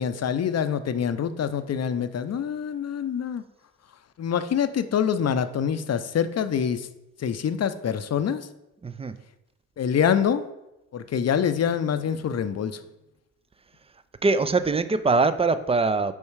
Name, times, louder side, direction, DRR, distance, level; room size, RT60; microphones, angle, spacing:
voice 1, 0.0-3.4 4.2-6.9 7.2-8.5 9.8-10.4 10.9-12.8, left 8 dB, 40° left, 11 dB, 0.6 m, -25 dB
voice 2, 8.8-9.1 14.2-16.1, right 3 dB, 15° right, 12 dB, 0.4 m, -22 dB
5.4 x 4.6 x 4.7 m, 0.95 s
supercardioid pair, 55°, 41 cm